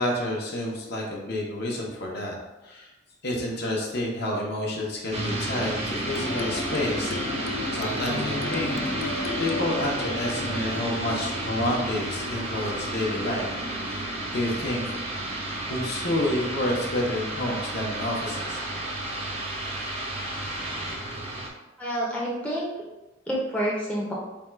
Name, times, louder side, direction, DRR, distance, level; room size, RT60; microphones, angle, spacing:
voice 1, 0.0-2.4 2.6-2.9 3.2-7.1 7.7-13.6 13.8-15.0 15.7-18.6, left 1 dB, 55° left, -2 dB, 0.9 m, -29 dB
sound 1, 5.1-21.5, right 1 dB, 30° right, 0.6 m, -31 dB
sound 2, 6.1-11.6, left 4 dB, 80° left, 0.3 m, -35 dB
voice 2, 21.8-22.7 23.3-24.1, equal, 5° left, -5 dB, 0.6 m, -28 dB
3.5 x 2.3 x 4.5 m, 1.0 s
head